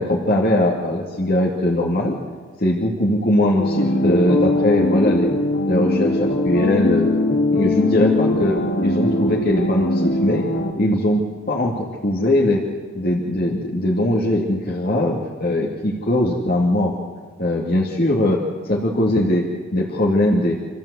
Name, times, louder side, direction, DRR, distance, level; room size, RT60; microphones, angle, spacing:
voice 1, 0.0-2.2 2.6-5.3 5.7-7.1 7.5-10.5 10.8-12.6 12.9-16.9 17.4-19.4 19.7-20.6, left 1 dB, 50° left, -2 dB, 2.1 m, -20 dB
sound 1, 3.6-10.7, left 1 dB, 70° left, 3.2 m, -21 dB
26.5 x 14.5 x 8.1 m, 1.5 s
head